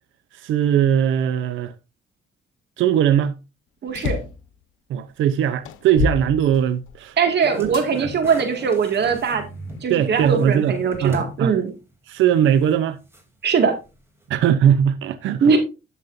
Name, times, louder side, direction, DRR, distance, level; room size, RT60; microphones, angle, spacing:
voice 1, 0.3-1.7 2.8-3.4 4.9-7.2 7.6-8.1 9.9-11.5 12.1-13.0 14.3-15.4, right 9 dB, 80° right, 0.7 m, -20 dB
voice 2, 3.8-4.2 7.2-9.4 9.8-11.7 13.4-13.7 15.4-15.6, right 6 dB, 60° right, 2.2 m, -20 dB
sound 1, 3.9-4.4 5.1-5.2 5.6-7.1 7.7-7.9 8.6-9.7, left 6 dB, 85° left, 1.0 m, -28 dB
sound 2, 7.4-9.9 10.2-11.4 11.8-11.9 13.1-13.2, right 1 dB, 10° right, 3.2 m, -35 dB
11.0 x 7.3 x 2.6 m
cardioid pair, 90°, 20 cm